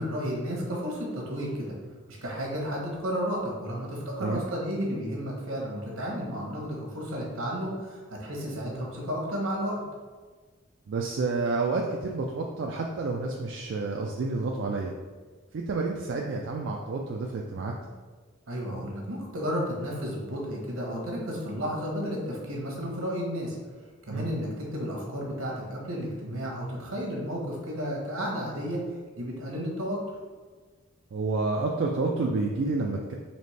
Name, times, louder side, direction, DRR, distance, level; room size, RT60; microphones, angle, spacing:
voice 1, 0.0-1.7 2.1-9.8 18.5-23.6 24.1-28.8 29.1-30.0, equal, 75° right, -2 dB, 1.1 m, -32 dB
voice 2, 10.9-14.9 15.5-17.7 24.1-24.3 31.1-33.1, right 3 dB, 55° right, 0 dB, 0.3 m, -29 dB
4.2 x 3.1 x 3.2 m, 1.4 s
head